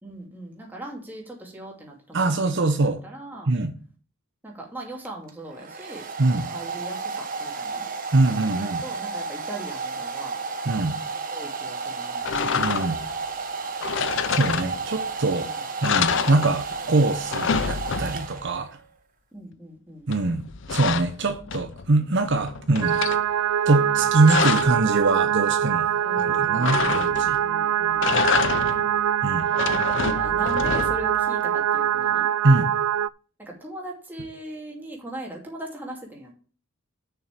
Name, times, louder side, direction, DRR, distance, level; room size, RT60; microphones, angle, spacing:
voice 1, 0.0-2.3 3.0-3.5 4.4-7.8 8.5-10.4 11.3-12.2 15.3-15.5 19.3-20.1 26.0-27.1 27.4-28.1 29.6-32.3 33.4-36.3, right 1 dB, 10° right, -1 dB, 2.6 m, -39 dB
voice 2, 2.1-3.0 3.5-3.7 6.2-6.5 8.1-8.8 10.6-11.0 12.5-13.0 14.3-15.5 15.8-18.7 20.1-23.0 23.7-25.9 26.2-27.4 29.2-29.5 32.4-32.7, right 2 dB, 55° right, 7 dB, 0.8 m, -23 dB
Domestic sounds home sounds, 5.0-18.8, right 4 dB, 40° right, 1.2 m, -32 dB
sound 1, 12.2-13.1 13.8-15.1 15.4-15.5 15.8-16.9 17.1-18.4 20.1-21.9 22.3-23.2 23.9-24.8 26.6-27.4 27.9-28.9 29.4-31.2, left 6 dB, 60° left, 0.5 m, -27 dB
sound 2, 22.8-33.1, right 9 dB, 85° right, 0.3 m, -23 dB
6.8 x 6.2 x 7.4 m, 0.41 s
head